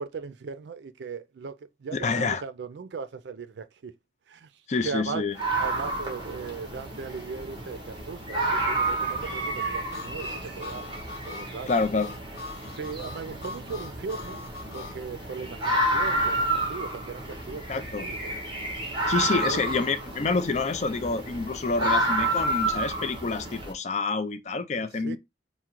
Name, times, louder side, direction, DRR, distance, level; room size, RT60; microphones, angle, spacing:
voice 1, 0.0-3.9 4.3-5.3 5.5-10.9 11.3-11.8 12.7-14.4 14.7-18.3 19.2-19.6 24.8-25.2, right 5 dB, 80° right, 0.4 m, -38 dB
voice 2, 1.9-2.4 4.7-5.4 11.7-12.1 17.7-18.0 19.1-25.2, left 4 dB, 40° left, 0.4 m, -27 dB
sound 1, 5.3-23.7, right 2 dB, 25° right, 1.1 m, -30 dB
Harmonica, 9.9-15.0, left 3 dB, 70° left, 1.1 m, -41 dB
3.7 x 2.1 x 4.4 m
head